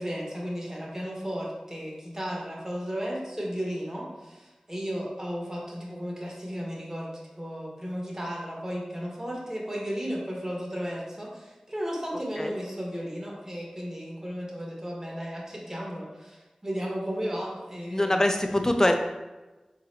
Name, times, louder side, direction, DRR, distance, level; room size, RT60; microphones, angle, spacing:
voice 1, 0.0-18.3, equal, 25° right, -3 dB, 1.4 m, -34 dB
voice 2, 17.9-18.9, left 1 dB, 25° left, 5 dB, 0.5 m, -23 dB
4.0 x 4.0 x 2.8 m, 1.1 s
cardioid pair, 40°, 2 cm